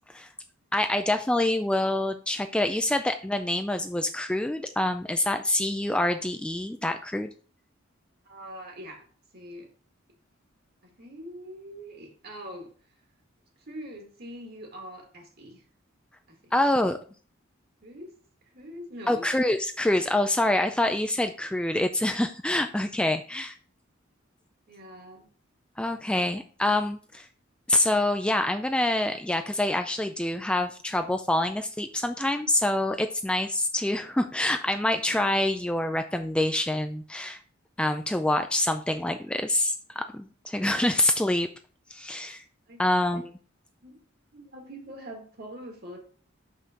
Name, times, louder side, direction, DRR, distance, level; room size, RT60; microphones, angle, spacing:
voice 1, 0.7-7.3 16.5-17.0 19.1-23.6 25.8-27.3 27.7-37.4 37.8-41.5 41.9-42.4 42.8-43.3, left 1 dB, 5° left, 7 dB, 0.3 m, -26 dB
voice 2, 8.2-9.0 9.3-9.7 10.8-12.7 13.7-15.6 16.3-16.5 17.8-18.2 18.5-19.3 24.7-25.3 42.7-42.8 43.1-43.2 43.8-44.0 44.3-46.0, equal, 55° right, 2 dB, 1.9 m, -43 dB
6.2 x 5.6 x 3.7 m, 0.41 s
head